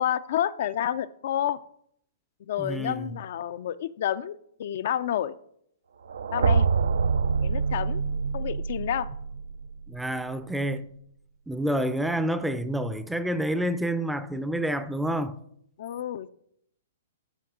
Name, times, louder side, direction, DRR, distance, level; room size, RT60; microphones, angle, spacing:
voice 1, 0.0-1.6 2.5-5.4 6.3-6.7 7.4-8.0 8.3-9.1 15.8-16.3, left 10 dB, 60° left, 0.3 m, -29 dB
voice 2, 2.6-3.1 9.9-10.9 11.5-15.4, right 1 dB, 5° right, 0.5 m, -28 dB
Gritty lo-fi explosion, 6.1-10.1, right 5 dB, 75° right, 0.4 m, -26 dB
12.0 x 5.2 x 3.7 m
hypercardioid pair, 130°, 0 cm